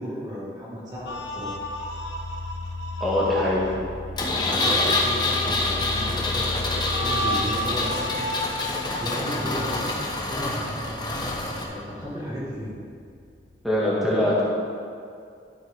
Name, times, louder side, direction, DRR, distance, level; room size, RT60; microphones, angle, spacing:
voice 1, 0.0-1.6 4.3-8.2 8.9-10.0 10.3-10.8 11.5-12.7, equal, 20° right, -8 dB, 1.7 m, -34 dB
sound 1, 1.1-3.8 6.7-9.8, equal, 70° left, 1.0 m, -32 dB
sound 2, 1.1-13.7, left 3 dB, 65° right, 2.5 m, -37 dB
voice 2, 3.0-3.6 13.6-14.4, left 1 dB, ahead, -8 dB, 1.8 m, -22 dB
Engine, 4.2-11.6, left 2 dB, 25° left, 1.0 m, -26 dB
12.5 x 7.4 x 3.6 m, 2.4 s
head